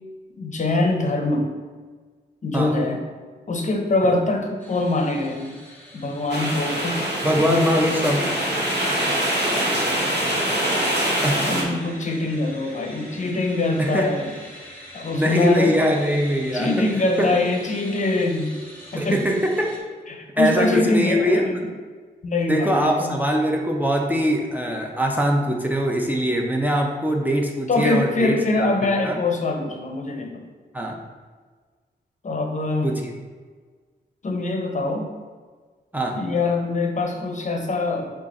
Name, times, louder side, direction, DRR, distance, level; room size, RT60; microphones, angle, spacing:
voice 1, 0.4-1.5 2.4-3.0 3.5-5.6 5.9-7.0 7.4-7.7 11.5-14.3 14.9-15.7 16.5-18.6 18.9-19.2 20.1-21.6 22.2-23.2 27.7-30.4 32.2-32.9 34.2-35.1 36.1-38.1, left 2 dB, 45° left, 2 dB, 0.6 m, -23 dB
sound 1, 4.6-19.8, equal, 10° left, 1.1 m, -44 dB
sound 2, 6.3-11.6, right 1 dB, 80° right, 0.9 m, -24 dB
voice 2, 7.2-8.3 11.2-11.5 13.8-14.1 15.1-16.9 17.2-17.4 19.0-19.7 20.4-21.6 22.5-28.7 29.0-29.2 30.7-31.0 32.8-33.2 35.9-36.2, equal, 10° right, 0 dB, 0.5 m, -22 dB
4.9 x 2.4 x 4.1 m, 1.5 s
wide cardioid pair, 80°, 17 cm